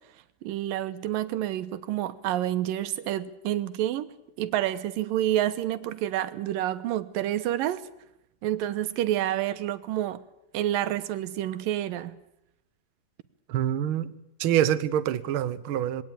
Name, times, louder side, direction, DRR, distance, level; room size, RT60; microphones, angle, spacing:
voice 1, 0.4-4.1 4.4-7.9 8.4-10.2 10.5-12.2, right 12 dB, 90° right, 2.8 m, -28 dB
voice 2, 13.5-14.1 14.4-16.0, right 10 dB, 70° right, 1.2 m, -25 dB
22.0 x 18.0 x 9.0 m
omnidirectional pair, 3.9 m